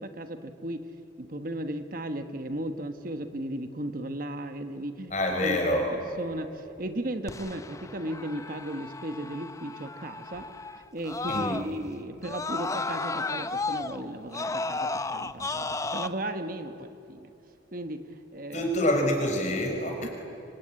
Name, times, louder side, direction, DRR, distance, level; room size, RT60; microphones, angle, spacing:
voice 1, 0.0-10.5 10.7-17.3 17.7-18.7 20.0-20.1, right 1 dB, 45° right, 8 dB, 1.2 m, -36 dB
voice 2, 5.1-5.9 11.3-11.6 18.5-20.1, left 1 dB, 35° left, 3 dB, 5.2 m, -26 dB
Screaming, 7.3-11.9 12.2-16.1, left 3 dB, 15° left, 0.6 m, -34 dB
27.0 x 25.0 x 8.8 m, 2.9 s
head